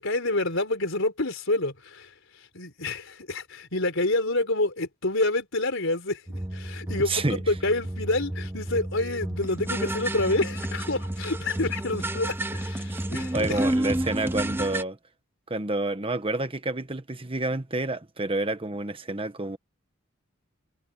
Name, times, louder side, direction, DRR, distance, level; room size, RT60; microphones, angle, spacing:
voice 1, 0.0-14.0, left 2 dB, 65° left, 4.9 m, -28 dB
sound 1, 6.3-14.8, right 1 dB, 10° right, 0.6 m, -31 dB
voice 2, 7.1-7.4 12.9-13.0 13.3-15.0 15.5-19.6, right 2 dB, 25° right, 1.2 m, -29 dB
head